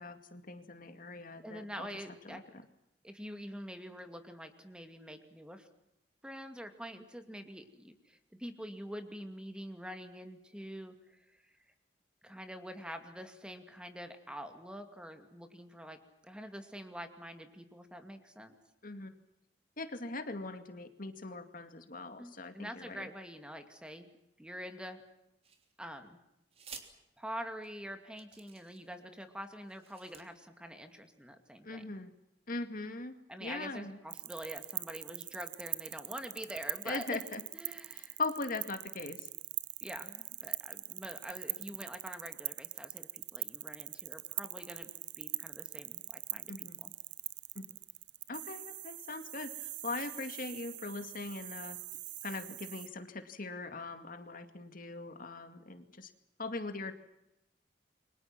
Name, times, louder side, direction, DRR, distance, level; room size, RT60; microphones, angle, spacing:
voice 1, 0.0-1.9 2.2-2.4 18.8-19.2 19.8-23.1 31.6-32.1 32.5-33.1 33.4-34.0 36.8-37.4 38.0-39.3 46.5-46.8 47.6-47.7 48.3-51.8 52.2-56.1 56.4-56.9, left 3 dB, 50° left, 8 dB, 2.2 m, -40 dB
voice 2, 1.4-2.4 3.0-5.7 6.2-11.4 12.2-16.0 16.2-18.5 22.2-24.1 24.4-25.0 25.8-26.2 27.2-31.9 33.3-37.2 37.5-38.2 39.8-44.9 45.2-46.9, equal, 5° right, 7 dB, 2.4 m, -46 dB
sound 1, 25.4-26.0 26.5-26.9 27.6-27.7 28.2-29.0 29.6-30.2, right 6 dB, 35° right, 3.3 m, -52 dB
sound 2, 34.1-52.9, right 17 dB, 80° right, 0.9 m, -42 dB
29.5 x 24.0 x 6.1 m, 0.85 s
head